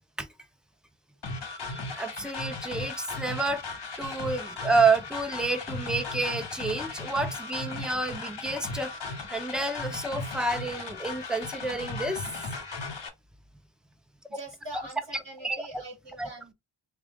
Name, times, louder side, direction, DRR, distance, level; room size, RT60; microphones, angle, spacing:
sound 1, 1.2-13.1, left 3 dB, 60° left, 1.0 m, -36 dB
voice 1, 1.5-3.6 4.0-12.2 14.7-14.8 15.1-15.6 16.2-16.3, right 3 dB, ahead, 0.6 m, -29 dB
voice 2, 14.3-16.5, right 2 dB, 60° right, 2.1 m, -43 dB
3.5 x 2.4 x 3.5 m
wide cardioid pair, 75°, 48 cm